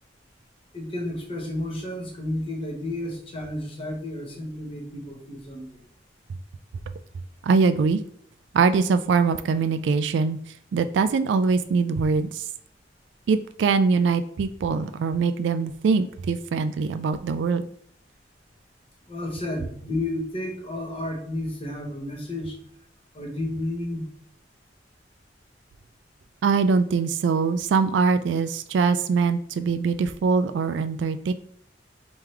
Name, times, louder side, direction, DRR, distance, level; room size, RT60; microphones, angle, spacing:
voice 1, 0.7-5.9 19.1-22.6 23.1-24.0, left 1 dB, 30° left, 0 dB, 1.2 m, -32 dB
voice 2, 7.4-8.0 8.5-10.4 10.7-12.5 13.3-17.7 26.4-31.3, right 5 dB, 70° right, 11 dB, 0.3 m, -22 dB
3.7 x 3.1 x 4.4 m, 0.63 s
head